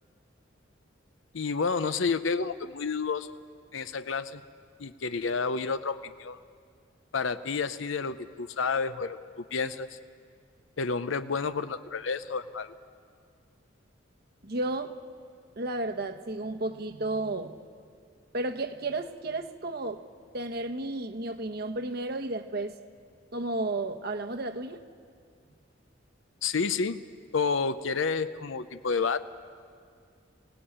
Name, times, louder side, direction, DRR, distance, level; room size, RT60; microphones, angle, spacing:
voice 1, 1.3-3.3 3.7-4.4 4.8-6.4 7.1-9.9 10.8-12.7 26.4-27.0 27.3-29.2, left 5 dB, 75° left, 11 dB, 0.7 m, -30 dB
voice 2, 14.4-14.9 15.6-17.6 18.3-20.0 20.3-22.7 23.3-24.8, right 2 dB, 50° right, 7 dB, 1.1 m, -32 dB
25.5 x 18.0 x 8.7 m, 2.2 s
head